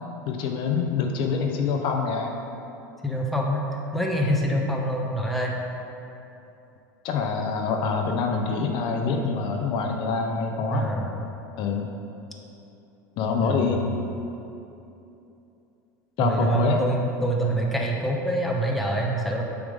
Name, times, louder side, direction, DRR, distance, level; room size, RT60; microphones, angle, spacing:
voice 1, 0.3-2.3 7.0-10.9 11.6-11.9 13.2-13.8 16.2-16.8, left 5 dB, 55° left, 2 dB, 0.7 m, -25 dB
voice 2, 3.0-3.6 3.9-5.6 10.7-11.2 13.4-13.6 16.2-19.4, right 1 dB, ahead, -2 dB, 0.8 m, -25 dB
7.1 x 3.6 x 5.1 m, 2.8 s
supercardioid pair, 105°, 10 cm